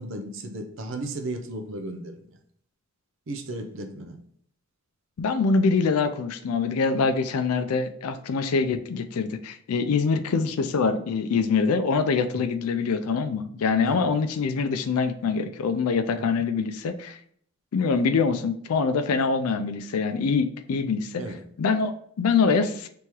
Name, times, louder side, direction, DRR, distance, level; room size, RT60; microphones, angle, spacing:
voice 1, 0.0-2.3 3.3-4.2 12.4-12.5 13.8-14.1 16.2-16.3 21.2-21.4, right 2 dB, 60° right, 6 dB, 0.5 m, -35 dB
voice 2, 5.2-17.2 17.7-21.2 21.6-22.9, left 5 dB, 85° left, 9 dB, 0.4 m, -24 dB
3.5 x 3.0 x 4.5 m, 0.64 s
head